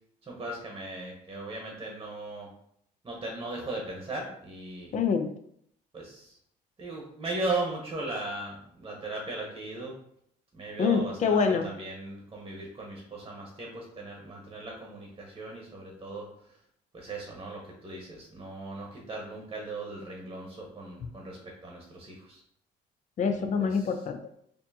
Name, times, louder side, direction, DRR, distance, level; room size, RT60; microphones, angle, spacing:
voice 1, 0.3-2.5 3.0-4.9 5.9-6.4 6.8-9.9 10.5-16.2 16.9-22.4 23.6-23.9, right 2 dB, 25° right, -1 dB, 1.0 m, -37 dB
voice 2, 4.9-5.3 10.8-11.7 23.2-24.2, left 5 dB, 45° left, 7 dB, 0.5 m, -25 dB
4.3 x 2.7 x 2.8 m, 0.70 s
cardioid pair, 110°, 17 cm